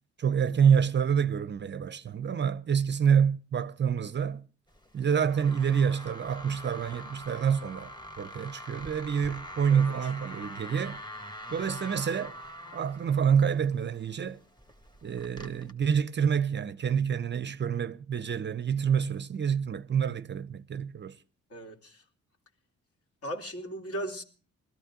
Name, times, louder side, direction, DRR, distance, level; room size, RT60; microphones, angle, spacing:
voice 1, 0.2-4.4 4.9-11.0 11.5-12.3 12.7-14.4 15.0-21.2, right 7 dB, 35° right, 0.6 m, -27 dB
sound 1, 4.7-15.7, equal, 15° left, 1.8 m, -44 dB
voice 2, 9.7-10.1 21.5-22.0 23.2-24.2, right 1 dB, 50° left, 3.0 m, -37 dB
20.0 x 13.5 x 3.8 m
cardioid pair, 90°, 30 cm